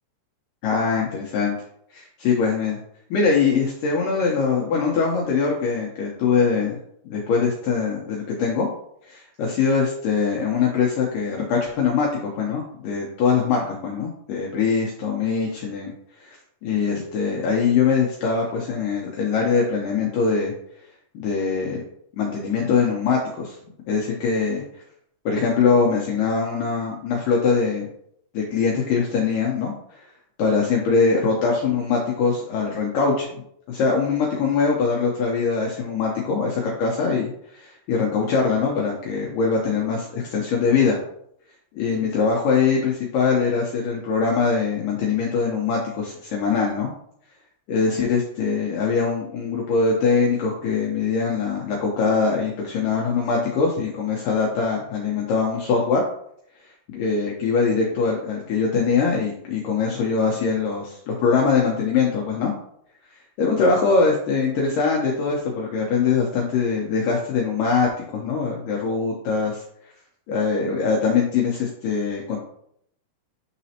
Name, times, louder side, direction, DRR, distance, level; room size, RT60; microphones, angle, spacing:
voice 1, 0.6-1.6 1.9-2.8 3.1-6.8 7.1-8.7 9.1-15.9 16.2-16.4 16.6-20.5 21.1-21.8 22.2-23.6 23.9-24.8 25.3-27.9 28.3-30.0 30.4-33.3 33.7-41.0 41.7-46.9 47.7-56.0 56.9-62.5 63.4-69.6 70.3-72.4, left 5 dB, 85° left, -1 dB, 1.8 m, -22 dB
9.2 x 4.0 x 2.9 m, 0.70 s
omnidirectional pair, 5.0 m